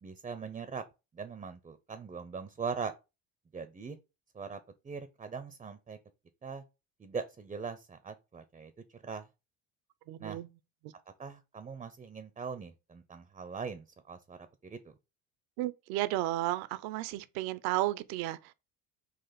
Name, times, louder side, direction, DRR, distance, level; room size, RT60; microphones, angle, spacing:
voice 1, 0.0-0.8 1.1-2.9 3.5-4.0 4.3-4.6 4.8-6.0 6.4-6.6 7.0-8.7 9.0-9.3 10.2-10.4 11.2-14.9, right 5 dB, 15° right, 0.4 m, -41 dB
voice 2, 10.1-10.5 10.8-10.9 15.6-18.5, right 16 dB, 65° right, 0.5 m, -33 dB
4.1 x 2.5 x 4.0 m
hypercardioid pair, 70°, 40 cm